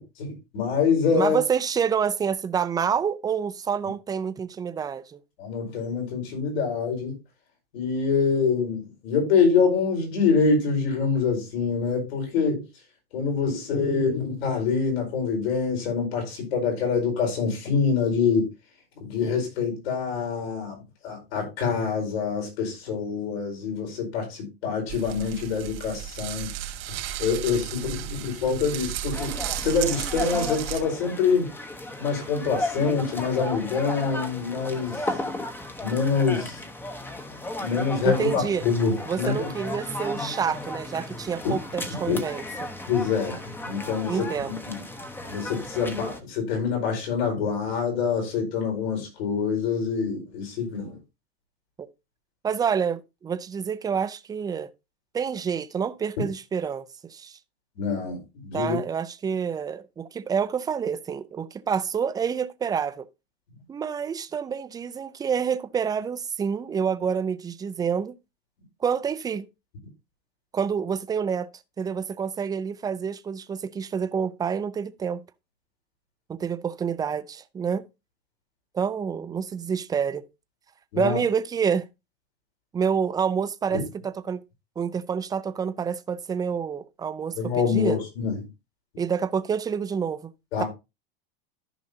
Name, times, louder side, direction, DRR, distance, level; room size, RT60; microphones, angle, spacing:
voice 1, 0.2-1.4 5.4-7.2 7.7-12.6 13.1-18.5 18.9-26.5 26.9-29.4 29.6-31.5 32.0-35.1 35.8-36.6 37.6-39.5 41.4-41.5 42.1-42.2 42.9-43.4 43.6-44.8 45.3-51.0 57.7-58.8 80.9-81.2 83.7-83.8 87.4-88.4 90.5-90.7, left 5 dB, 80° left, 4.7 m, -25 dB
voice 2, 1.1-5.2 38.0-38.6 39.1-42.7 44.1-44.6 52.4-54.7 55.1-57.4 58.5-63.1 63.7-68.2 68.8-69.5 70.5-71.5 71.8-75.2 76.4-77.8 78.7-80.2 81.0-81.9 82.7-84.4 84.8-88.0 89.0-90.3 90.6-90.7, right 7 dB, 15° right, 0.4 m, -28 dB
sound 1, 24.9-30.8, right 11 dB, 70° right, 2.2 m, -34 dB
sound 2, 29.1-46.2, left 2 dB, 5° left, 0.9 m, -35 dB
14.0 x 5.4 x 2.7 m
supercardioid pair, 140°, 30 cm